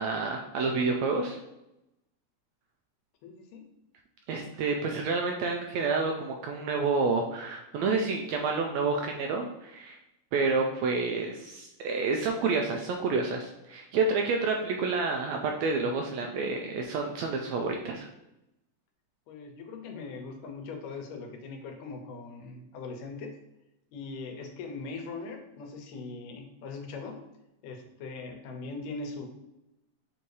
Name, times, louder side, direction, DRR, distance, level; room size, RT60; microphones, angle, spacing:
voice 1, 0.0-1.4 4.3-10.0 10.3-18.1, right 4 dB, 80° right, 2 dB, 1.6 m, -29 dB
voice 2, 3.2-3.6 19.3-23.3 23.9-27.2 27.6-29.3, left 4 dB, 90° left, 3 dB, 2.5 m, -40 dB
7.3 x 2.7 x 4.7 m, 0.89 s
omnidirectional pair, 3.6 m